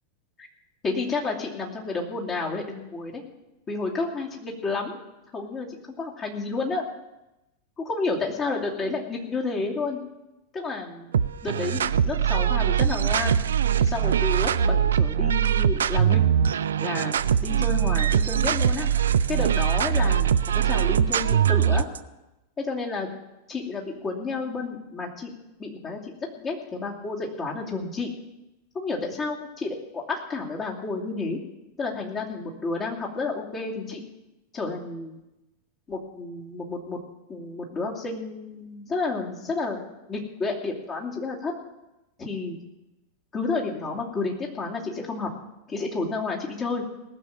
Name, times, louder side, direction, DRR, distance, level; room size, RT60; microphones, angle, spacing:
voice 1, 0.8-3.2 3.7-5.0 5.3-6.8 7.8-10.0 10.5-11.1 11.4-13.4 13.8-16.2 16.8-18.9 19.3-21.9 22.6-23.1 23.5-25.3 25.6-28.1 28.7-31.4 31.8-34.0 34.5-35.2 35.9-37.0 37.3-41.5 42.2-42.6 43.3-45.3 45.7-46.8, left 3 dB, 25° left, -2 dB, 2.7 m, -31 dB
sound 1, 11.1-22.0, right 9 dB, 65° right, 0.4 m, -22 dB
18.5 x 7.0 x 7.6 m, 0.96 s
figure-of-eight pair, 90°, 0 cm